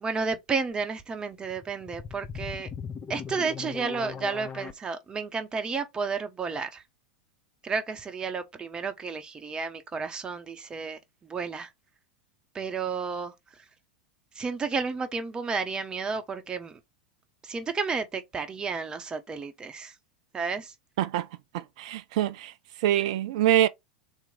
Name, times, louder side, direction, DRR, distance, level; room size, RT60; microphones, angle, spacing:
voice 1, 0.0-2.7 3.1-6.8 7.6-11.0 11.3-11.7 12.5-13.3 14.4-16.8 17.4-19.9 20.3-20.7, right 5 dB, 20° right, 0.8 m, -32 dB
sound 1, 1.4-4.7, left 6 dB, 20° left, 0.6 m, -38 dB
voice 2, 21.5-22.5 22.8-23.7, right 12 dB, 55° right, 0.4 m, -24 dB
3.6 x 3.0 x 3.7 m
figure-of-eight pair, 85°, 4 cm